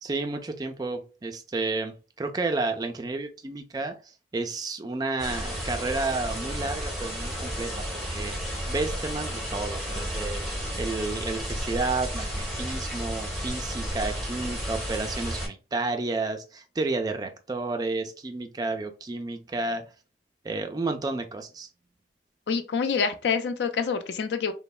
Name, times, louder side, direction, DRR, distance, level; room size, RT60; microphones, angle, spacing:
voice 1, 0.0-7.8 8.1-8.4 8.7-10.4 10.8-19.9 20.4-21.7, right 3 dB, 20° right, 0.3 m, -31 dB
sound 1, 5.2-15.5, equal, ahead, 1.0 m, -32 dB
voice 2, 22.5-24.5, left 6 dB, 70° left, 0.4 m, -26 dB
3.0 x 2.1 x 2.3 m
head